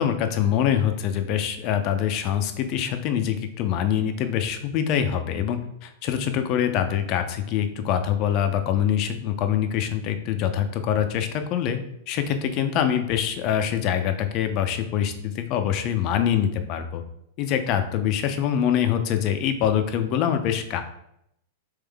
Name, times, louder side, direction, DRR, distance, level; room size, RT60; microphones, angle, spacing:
voice 1, 0.0-11.8 12.1-17.0 17.4-20.8, left 9 dB, 45° left, 7 dB, 0.5 m, -24 dB
3.6 x 3.1 x 3.4 m, 0.77 s
hypercardioid pair, 115°, 0 cm